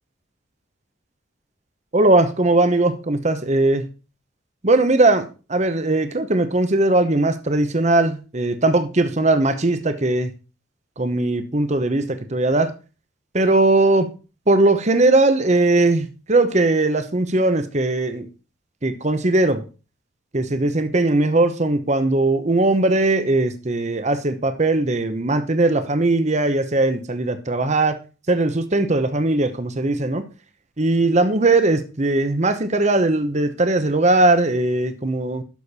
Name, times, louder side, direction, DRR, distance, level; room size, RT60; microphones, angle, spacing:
voice 1, 1.9-3.9 4.6-10.3 11.0-12.7 13.3-14.1 14.5-18.3 18.8-19.6 20.3-28.0 28.3-30.2 30.8-35.4, right 2 dB, 35° right, 0.9 m, -19 dB
11.5 x 6.5 x 4.2 m
head